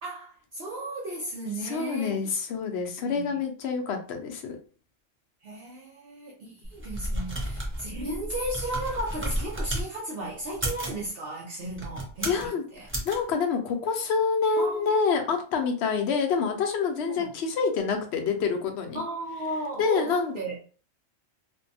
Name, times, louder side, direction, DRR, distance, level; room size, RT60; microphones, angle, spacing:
voice 1, 0.0-2.2 3.0-3.4 5.4-12.9 14.6-15.0 17.1-17.3 18.9-20.6, right 1 dB, 65° right, 0.8 m, -35 dB
voice 2, 1.6-4.6 12.3-12.6 13.0-19.0 19.8-20.3, left 5 dB, 75° left, 0.8 m, -27 dB
sound 1, 6.6-9.9 10.5-11.0 11.7-12.5 12.9-13.2, right 1 dB, 20° right, 0.4 m, -32 dB
2.6 x 2.2 x 2.6 m
omnidirectional pair, 1.1 m